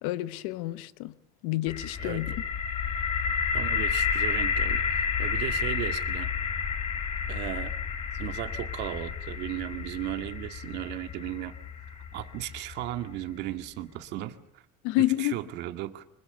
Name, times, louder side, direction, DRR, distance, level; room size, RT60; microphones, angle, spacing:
voice 1, 0.0-1.1 1.4-2.3 14.8-15.4, left 16 dB, 90° left, 1.1 m, -28 dB
sound 1, 1.7-13.5, left 6 dB, 30° left, 1.8 m, -31 dB
voice 2, 3.5-6.3 7.3-7.8 8.1-11.5 11.9-14.4 15.0-16.0, right 14 dB, 55° right, 2.0 m, -36 dB
27.5 x 25.0 x 6.8 m
cardioid pair, 180°, 21 cm